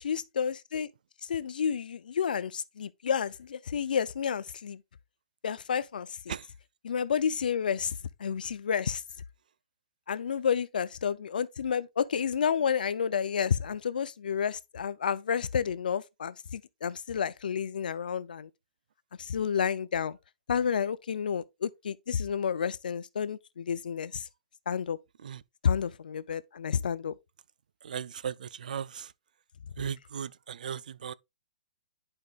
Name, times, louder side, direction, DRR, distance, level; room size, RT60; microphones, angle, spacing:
voice 1, 0.0-0.9 1.3-4.8 5.4-6.2 6.8-9.0 10.1-18.5 19.2-20.2 20.5-24.3 24.7-25.0 25.6-27.1, left 7 dB, 75° left, 0.6 m, -30 dB
voice 2, 27.8-29.1 29.8-31.1, right 8 dB, 65° right, 0.4 m, -37 dB
11.0 x 4.8 x 2.4 m
hypercardioid pair, 175°, 5 cm